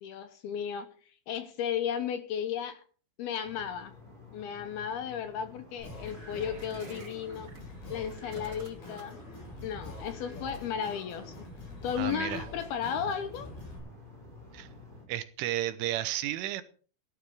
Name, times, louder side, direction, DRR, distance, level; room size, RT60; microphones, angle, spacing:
voice 1, 0.0-0.9 1.3-2.8 3.2-3.9 4.3-7.5 7.9-9.2 9.6-11.4 11.8-13.5, left 8 dB, 75° left, 10 dB, 2.3 m, -34 dB
sound 1, 3.4-15.1, left 3 dB, 10° right, 3.7 m, -51 dB
Singing, 5.8-13.8, left 2 dB, 50° left, 9.9 m, -45 dB
sound 2, 6.0-7.6 8.1-9.2 10.5-10.9, right 3 dB, 30° right, 2.4 m, -51 dB
voice 2, 12.0-12.5 14.5-14.7 15.1-16.6, right 13 dB, 80° right, 13 dB, 3.3 m, -32 dB
16.5 x 12.0 x 4.8 m, 0.41 s
omnidirectional pair, 5.7 m